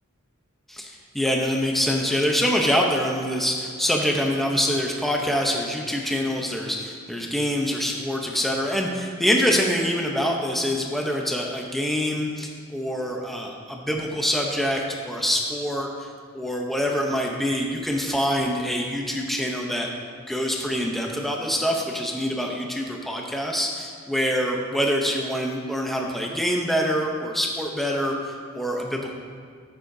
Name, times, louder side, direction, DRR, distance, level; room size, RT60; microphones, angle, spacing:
voice 1, 0.7-16.1 16.3-19.9 20.3-29.1, equal, ahead, 0 dB, 0.7 m, -25 dB
14.0 x 8.6 x 2.7 m, 2.1 s
head